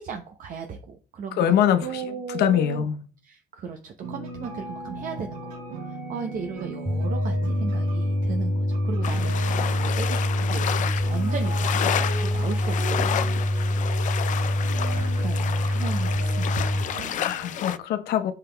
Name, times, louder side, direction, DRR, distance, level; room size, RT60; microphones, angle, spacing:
voice 1, 0.0-2.8 3.2-5.5 5.8-13.3 14.9-17.3, right 6 dB, 50° right, 0.8 m, -36 dB
voice 2, 1.4-2.0 2.3-3.0 17.2-18.3, left 9 dB, 75° left, 1.0 m, -23 dB
sound 1, 4.0-17.7, right 2 dB, 80° right, 3.0 m, -38 dB
sound 2, 6.9-16.9, left 1 dB, 10° right, 1.0 m, -25 dB
sound 3, 9.0-17.8, left 10 dB, 50° left, 0.4 m, -31 dB
5.7 x 5.7 x 3.4 m
cardioid pair, 110°, 17 cm